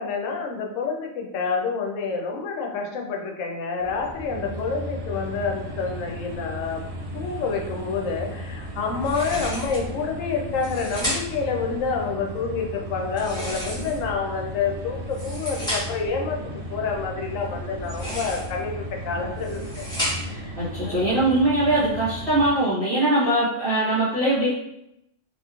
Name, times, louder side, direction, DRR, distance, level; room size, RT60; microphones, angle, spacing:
voice 1, 0.0-6.8 7.1-16.4 16.7-19.8 20.2-20.5 20.8-21.0, left 5 dB, 80° left, 2 dB, 0.9 m, -28 dB
sound 1, 3.8-22.5, equal, 70° right, 0.3 m, -35 dB
sound 2, 9.0-9.9 10.5-11.5 13.1-14.2 15.0-16.1 17.7-18.6 19.2-20.4, equal, 5° left, 0.9 m, -32 dB
voice 2, 20.6-24.5, right 1 dB, 35° right, -11 dB, 0.7 m, -21 dB
3.0 x 2.3 x 2.4 m, 0.81 s
omnidirectional pair, 1.3 m